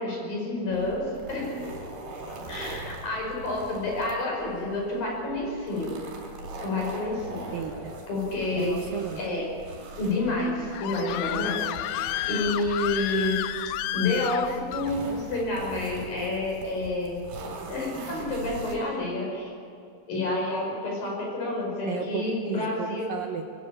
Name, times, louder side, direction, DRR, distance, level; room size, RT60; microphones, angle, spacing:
voice 1, 0.0-1.5 2.5-6.0 6.6-7.5 8.1-8.8 9.2-9.5 10.0-13.4 13.9-17.2 17.7-19.5 20.1-23.1, left 2 dB, 45° left, -1 dB, 7.1 m, -29 dB
sound 1, 0.7-18.8, right 2 dB, 55° right, 5.7 m, -41 dB
voice 2, 7.5-7.9 8.6-9.4 21.9-23.4, right 7 dB, 85° right, 3 dB, 2.0 m, -34 dB
Screaming, 10.4-14.9, left 13 dB, 80° left, 2.7 m, -31 dB
21.5 x 16.5 x 8.9 m, 2.4 s
omnidirectional pair, 5.6 m